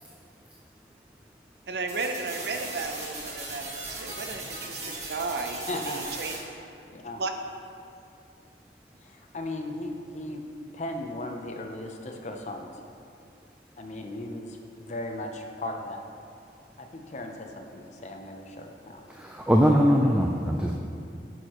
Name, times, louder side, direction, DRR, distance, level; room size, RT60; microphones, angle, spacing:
voice 1, 1.7-6.3 7.2-7.3, right 3 dB, 65° right, 5 dB, 0.6 m, -34 dB
sound 1, 1.9-6.4, right 2 dB, 40° right, 1.7 m, -38 dB
voice 2, 5.7-6.2 6.5-7.2 9.0-10.4 10.7-12.7 13.8-16.0 16.8-19.0, left 1 dB, 40° left, 3 dB, 0.6 m, -37 dB
voice 3, 19.2-20.7, equal, 5° right, 0 dB, 0.3 m, -21 dB
9.8 x 6.3 x 3.0 m, 2.5 s
head